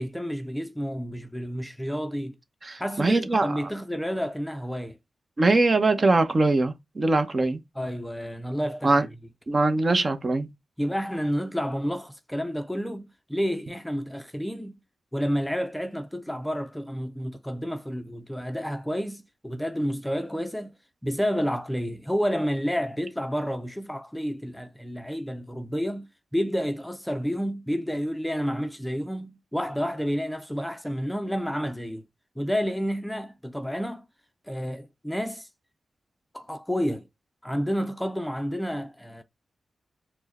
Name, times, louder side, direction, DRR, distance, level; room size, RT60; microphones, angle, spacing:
voice 1, 0.0-2.4 2.8-5.0 7.8-9.1 10.8-14.8 15.1-20.7 21.0-32.0 32.4-34.1 34.5-35.5 36.3-37.1 37.4-39.2, equal, 5° left, 0.5 m, -30 dB
voice 2, 2.6-3.6 5.4-7.6 8.8-9.1 9.5-10.5, right 2 dB, 40° right, 0.8 m, -22 dB
4.5 x 2.1 x 4.1 m
cardioid pair, 55°, 0 cm